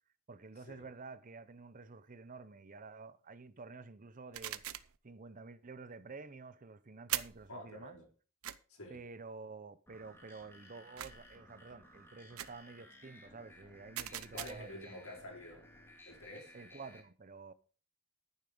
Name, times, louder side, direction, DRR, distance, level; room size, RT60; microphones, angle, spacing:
voice 1, 0.3-8.0 8.9-14.9 16.5-17.5, right 4 dB, 40° right, 0.7 m, -50 dB
sound 1, 4.3-5.0 7.1-7.5 8.4-8.6 11.0-11.4 12.4-12.6 13.9-14.7, right 13 dB, 85° right, 0.7 m, -41 dB
voice 2, 7.5-8.1 8.7-9.0 14.3-15.6 16.0-16.5, left 1 dB, 75° left, 4.8 m, -48 dB
sound 2, 9.9-17.0, left 1 dB, 10° left, 3.0 m, -58 dB
10.5 x 9.7 x 5.1 m
head